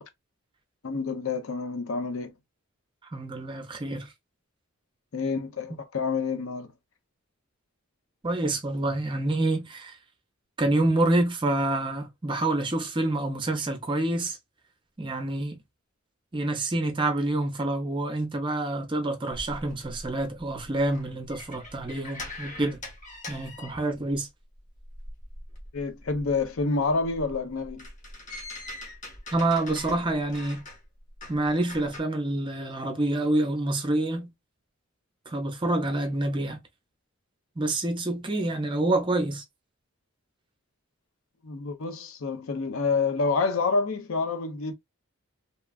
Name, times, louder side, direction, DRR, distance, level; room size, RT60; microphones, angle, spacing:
voice 1, 0.8-2.3 5.1-6.7 25.7-27.9 41.4-44.7, left 4 dB, 70° left, 0.6 m, -28 dB
voice 2, 3.1-4.1 8.2-10.0 10.6-14.4 15.0-15.6 16.3-22.8 23.3-24.3 29.3-30.6 31.3-34.3 35.3-36.6 37.6-39.4, right 2 dB, 25° right, 0.6 m, -27 dB
sound 1, 19.3-24.3 24.5-32.0, left 2 dB, 35° left, 1.0 m, -43 dB
2.9 x 2.3 x 2.2 m
head